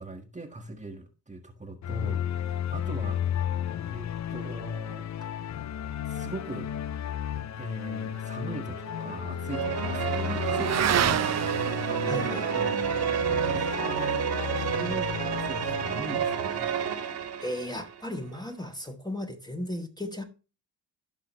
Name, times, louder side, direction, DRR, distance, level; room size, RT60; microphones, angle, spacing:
voice 1, 0.0-3.3 3.8-5.1 6.1-6.7 7.6-13.1 13.4-16.7, right 2 dB, 15° right, 1.5 m, -40 dB
sound 1, 1.8-16.3, left 10 dB, 35° left, 0.6 m, -34 dB
Motorcycle / Accelerating revving vroom, 7.9-16.7, right 11 dB, 35° right, 0.5 m, -34 dB
sound 2, 9.5-18.1, right 8 dB, 55° right, 1.9 m, -30 dB
voice 2, 12.0-12.7 17.4-20.2, left 1 dB, 10° left, 1.6 m, -35 dB
15.0 x 5.6 x 3.1 m
hypercardioid pair, 50°, 48 cm